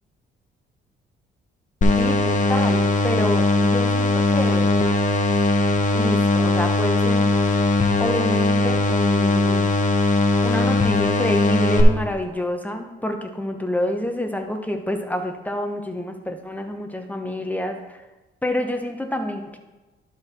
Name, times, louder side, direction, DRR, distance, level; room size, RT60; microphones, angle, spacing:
sound 1, 1.8-11.8, left 2 dB, 40° left, 1.0 m, -19 dB
voice 1, 2.0-4.8 5.9-7.3 8.0-9.7 10.4-18.0 18.4-19.6, left 1 dB, 10° left, 5 dB, 1.0 m, -28 dB
11.5 x 4.5 x 4.3 m, 1.1 s
cardioid pair, 90°, 20 cm